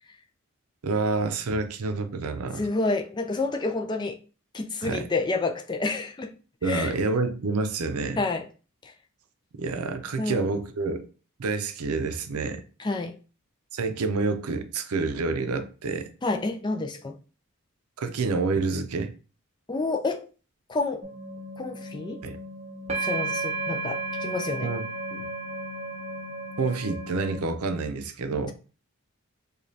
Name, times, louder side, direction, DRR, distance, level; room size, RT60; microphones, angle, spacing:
voice 1, 0.8-2.7 4.8-5.1 6.6-8.2 9.6-11.1 11.4-12.6 13.7-16.1 18.0-19.1 22.2-22.4 24.6-25.2 26.6-28.5, right 3 dB, 85° right, 0.5 m, -28 dB
voice 2, 2.6-4.2 4.5-6.3 6.7-6.9 8.2-8.4 10.2-10.5 12.8-13.1 16.2-17.2 19.7-20.3 20.7-21.0 21.6-22.2 22.9-24.7, left 3 dB, 20° left, 0.4 m, -29 dB
sound 1, 21.0-27.4, right 2 dB, 30° right, 0.6 m, -33 dB
4.9 x 2.3 x 2.7 m
head